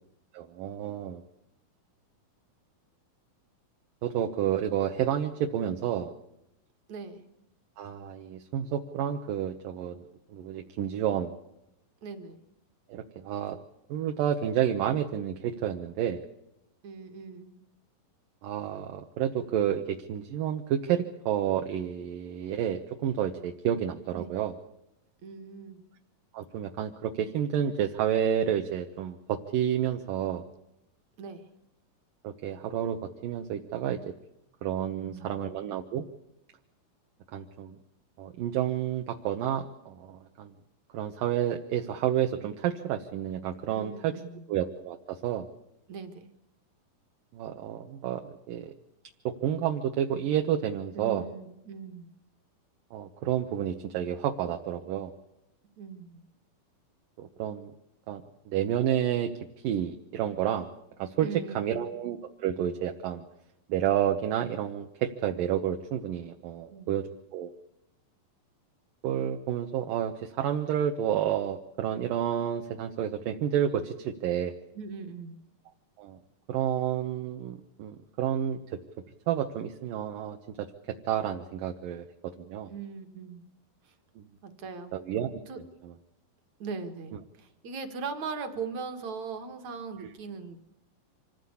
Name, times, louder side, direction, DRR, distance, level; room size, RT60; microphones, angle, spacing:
voice 1, 0.3-1.2 4.0-6.1 7.8-11.4 12.9-13.6 13.9-16.2 18.4-24.5 26.3-30.4 32.2-33.0 33.2-34.0 34.6-36.1 37.3-37.8 38.2-40.5 40.9-44.1 44.5-45.4 47.3-48.7 49.4-51.2 52.9-55.1 57.2-57.7 58.1-59.3 59.6-60.7 61.0-61.3 61.6-63.3 63.7-67.1 67.3-67.5 69.0-74.5 76.0-76.2 76.5-78.6 79.3-80.7 81.1-82.1 82.4-82.7 84.2-84.3 84.9-85.3, right 10 dB, 70° right, 4 dB, 2.6 m, -30 dB
voice 2, 6.9-7.3 12.0-12.4 16.8-17.6 24.1-24.4 25.2-25.8 31.2-31.5 34.9-35.4 43.8-44.4 45.9-46.3 50.9-52.1 55.8-56.2 61.2-61.9 66.7-67.0 74.7-75.4 82.7-83.5 83.8-83.9 84.4-85.0 85.5-85.6 86.6-90.6, right 5 dB, 55° right, 6 dB, 3.1 m, -40 dB
26.0 x 15.5 x 8.4 m, 0.86 s
omnidirectional pair, 4.2 m